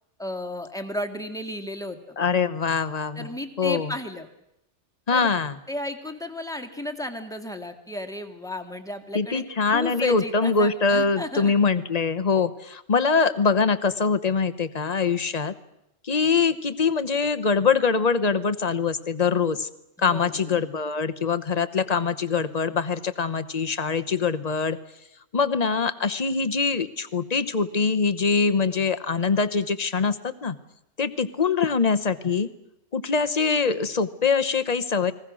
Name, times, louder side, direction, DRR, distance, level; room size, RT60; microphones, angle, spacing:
voice 1, 0.2-2.2 3.1-4.3 5.1-5.3 5.7-11.5 20.0-20.6, left 1 dB, ahead, 5 dB, 1.8 m, -34 dB
voice 2, 2.2-3.3 3.6-3.9 5.1-5.6 9.1-15.5 16.0-19.7 20.0-24.8 25.3-30.6 31.0-32.5 32.9-35.1, left 5 dB, 30° left, 11 dB, 1.0 m, -23 dB
29.5 x 21.0 x 6.3 m, 0.82 s
omnidirectional pair, 1.5 m